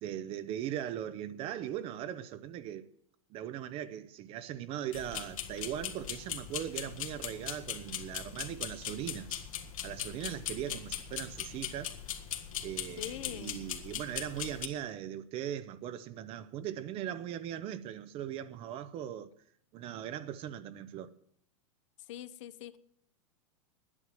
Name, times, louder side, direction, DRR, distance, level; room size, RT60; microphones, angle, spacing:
voice 1, 0.0-2.9 3.3-9.4 9.8-11.9 12.6-19.3 19.7-21.1, right 10 dB, 35° right, 0.7 m, -39 dB
sound 1, 4.9-14.7, left 9 dB, 80° left, 1.6 m, -40 dB
voice 2, 13.0-13.6 22.1-22.8, left 12 dB, 65° left, 0.8 m, -43 dB
10.5 x 9.8 x 7.6 m
hypercardioid pair, 135°, 17 cm